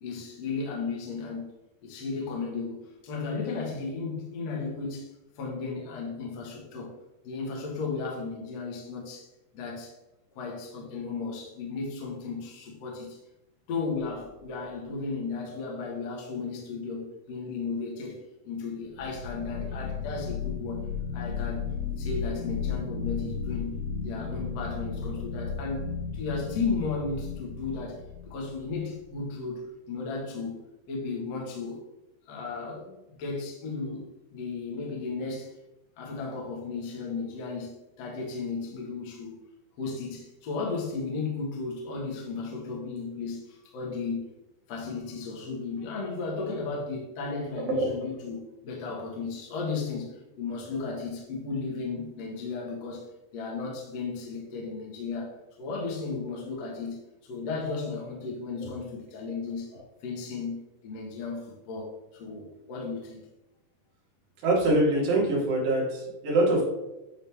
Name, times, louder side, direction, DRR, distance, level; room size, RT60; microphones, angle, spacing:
voice 1, 0.0-1.5 1.8-5.1 5.4-6.9 7.2-9.3 9.5-9.9 10.4-13.2 13.7-18.2 18.4-20.8 21.1-21.7 22.0-25.8 26.1-28.0 28.3-29.6 29.9-31.8 32.3-32.9 33.2-34.0 34.3-35.5 36.0-37.7 38.0-39.4 39.8-44.2 44.7-53.0 53.3-57.0 57.3-59.7 60.0-63.2, left 4 dB, 50° left, -3 dB, 2.1 m, -34 dB
sound 1, 14.0-14.5 18.8-29.0, left 6 dB, 65° left, 2.1 m, -34 dB
voice 2, 47.6-47.9 64.4-66.6, right 1 dB, 55° right, -4 dB, 3.8 m, -24 dB
10.5 x 4.0 x 3.5 m, 0.97 s
omnidirectional pair, 4.8 m